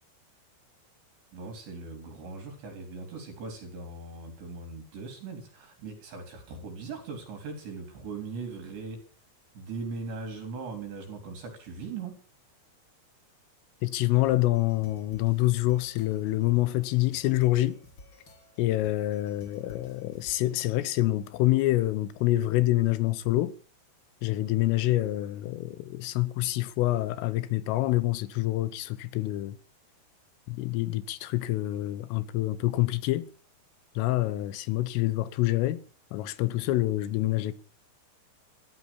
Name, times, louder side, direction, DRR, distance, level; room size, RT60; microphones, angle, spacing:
voice 1, 1.3-9.0 9.6-12.2, right 4 dB, 60° right, 5.8 m, -39 dB
voice 2, 13.8-17.8 18.6-23.6 24.2-29.6 30.5-33.3 34.0-35.8 36.1-37.5, left 17 dB, 85° left, 3.6 m, -26 dB
sound 1, 14.3-21.1, left 1 dB, 25° left, 3.8 m, -55 dB
14.5 x 12.5 x 7.2 m
omnidirectional pair, 5.7 m